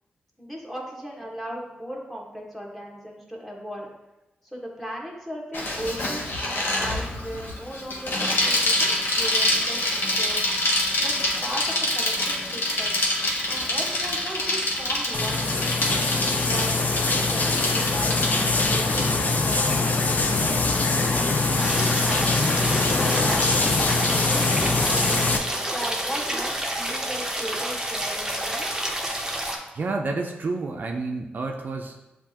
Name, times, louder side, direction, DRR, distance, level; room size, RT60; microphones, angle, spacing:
voice 1, 0.4-3.9 4.4-10.4 11.0-11.2 11.4-11.6 11.9-13.0 13.5-20.6 21.1-25.0 25.6-28.7, equal, ahead, -2 dB, 1.2 m, -37 dB
Bicycle, 5.5-19.1, left 1 dB, 75° left, 0.9 m, -26 dB
sound 1, 15.1-25.4, left 3 dB, 45° left, 0.5 m, -23 dB
sound 2, 21.6-29.6, right 1 dB, 15° right, 0.7 m, -29 dB
voice 2, 29.7-32.0, right 3 dB, 55° right, 2 dB, 0.4 m, -29 dB
7.1 x 2.4 x 2.8 m, 0.99 s
cardioid pair, 60°, 4 cm